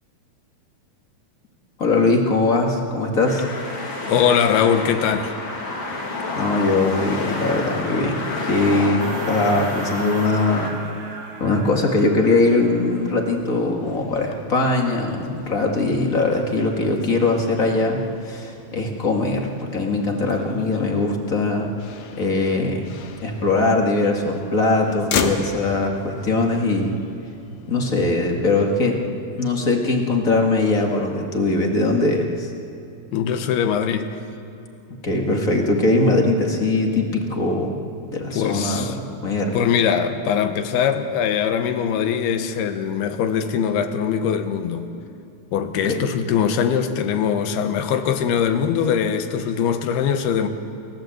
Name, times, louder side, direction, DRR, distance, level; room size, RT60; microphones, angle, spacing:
voice 1, 1.8-3.4 6.3-10.8 11.1-21.7 22.2-22.9 23.2-26.9 27.7-29.0 29.3-32.5 34.9-37.7 38.0-38.8 39.2-39.7 45.8-46.0, left 2 dB, 30° left, 1 dB, 1.5 m, -21 dB
sound 1, 3.2-10.7, left 2 dB, 50° left, 3.9 m, -29 dB
voice 2, 4.0-5.3 33.1-34.1 38.3-39.0 39.5-44.9 45.5-50.5, left 8 dB, 85° left, 8 dB, 3.1 m, -21 dB
sound 2, 9.0-13.5, right 3 dB, 85° right, 4.4 m, -38 dB
Motor vehicle (road), 12.3-28.1, left 6 dB, 70° left, 2.7 m, -36 dB
29.5 x 15.5 x 7.9 m, 2.7 s
omnidirectional pair, 4.4 m